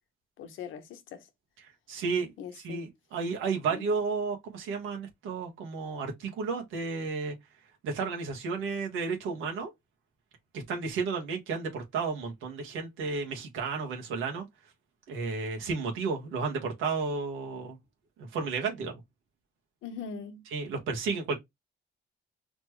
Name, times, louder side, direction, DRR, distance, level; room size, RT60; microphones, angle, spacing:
voice 1, 0.4-1.3 2.4-2.9 3.7-3.9 19.8-20.4, left 6 dB, 80° left, 1.1 m, -41 dB
voice 2, 1.9-7.3 7.8-9.7 10.5-14.4 15.1-17.8 18.2-19.0 20.5-21.4, right 4 dB, 90° right, 1.6 m, -32 dB
4.3 x 3.1 x 3.1 m
cardioid pair, 90°, 20 cm